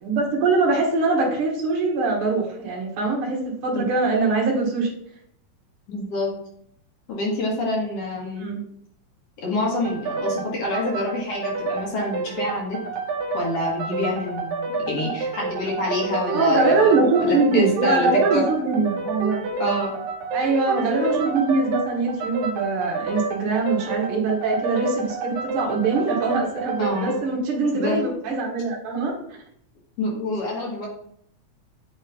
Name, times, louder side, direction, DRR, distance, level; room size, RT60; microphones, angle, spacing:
voice 1, 0.0-4.9 8.4-8.6 16.3-19.5 20.3-29.1, right 3 dB, 55° right, -3 dB, 2.0 m, -22 dB
voice 2, 5.9-6.3 7.1-8.5 9.4-12.8 13.3-16.9 17.2-18.4 19.6-20.0 26.8-27.1 27.7-28.0 30.0-30.9, left 2 dB, 60° left, -2 dB, 2.3 m, -27 dB
sound 1, 9.8-27.3, right 4 dB, 75° right, 1.8 m, -29 dB
8.5 x 3.1 x 3.9 m, 0.69 s
omnidirectional pair, 3.3 m